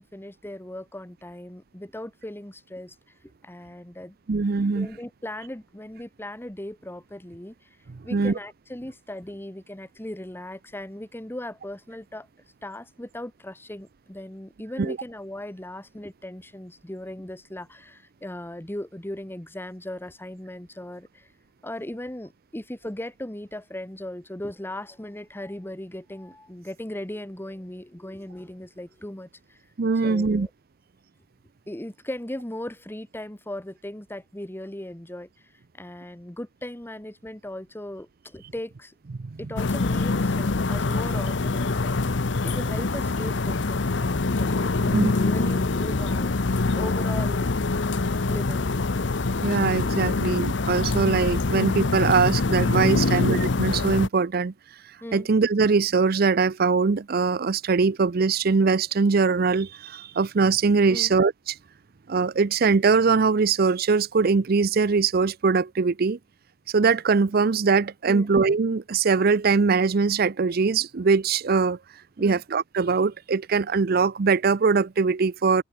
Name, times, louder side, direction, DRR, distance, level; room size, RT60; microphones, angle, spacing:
voice 1, 0.0-2.9 3.4-4.4 4.7-7.5 8.0-12.3 12.6-21.3 21.6-29.6 30.0-30.5 31.7-38.9 39.4-46.3 46.7-47.5 48.3-48.7 55.0-55.3 60.9-61.1 68.1-68.3 72.2-72.4, left 1 dB, 10° left, 1.2 m, -38 dB
voice 2, 4.3-4.9 8.1-8.3 14.8-15.0 29.8-30.5 39.2-39.3 44.9-45.1 49.4-54.5 55.1-61.5 62.1-66.2 66.7-71.8 72.2-75.6, right 4 dB, 55° right, 0.5 m, -22 dB
sound 1, 39.6-54.1, left 3 dB, 70° left, 0.9 m, -24 dB
open air
head